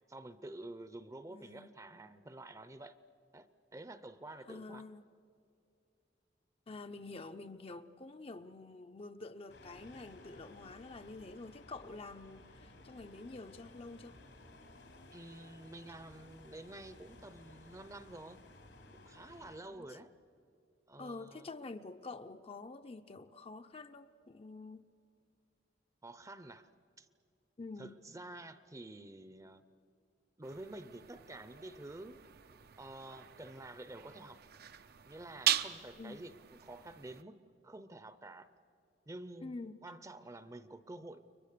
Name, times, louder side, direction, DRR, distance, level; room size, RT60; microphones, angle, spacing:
voice 1, 0.1-3.0 3.3-4.8 15.1-18.4 18.9-20.1 20.9-21.5 26.0-26.7 27.0-27.1 27.8-29.7 30.4-32.2 32.8-34.4 35.0-36.3 36.6-37.4 37.6-38.5 39.1-39.6 39.8-41.2, right 2 dB, 20° right, 0.7 m, -49 dB
voice 2, 1.3-1.7 4.5-5.0 6.7-14.2 19.8-19.9 21.0-24.8 27.6-28.0 36.0-36.2 39.4-39.8, left 3 dB, 30° left, 0.6 m, -48 dB
sound 1, 9.5-19.6, left 2 dB, 85° left, 3.3 m, -57 dB
sound 2, 30.4-37.2, right 10 dB, 55° right, 0.6 m, -40 dB
30.0 x 23.0 x 6.7 m
head